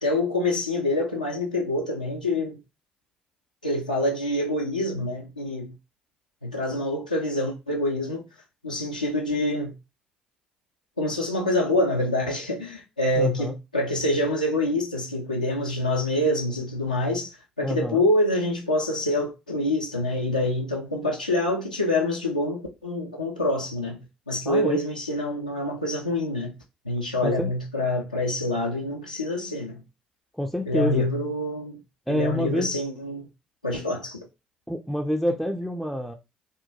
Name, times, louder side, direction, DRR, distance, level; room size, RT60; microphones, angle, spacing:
voice 1, 0.0-2.6 3.6-5.7 6.4-8.2 8.6-9.7 11.0-24.0 24.3-26.5 26.9-29.8 30.7-31.8 32.1-33.3 33.6-34.3, left 1 dB, 90° left, 0.3 m, -26 dB
voice 2, 13.2-13.6 17.6-18.0 24.5-24.8 27.2-27.5 30.3-31.1 32.1-32.7 34.7-36.1, equal, ahead, 0.3 m, -27 dB
2.8 x 2.1 x 2.7 m
figure-of-eight pair, 50°, 4 cm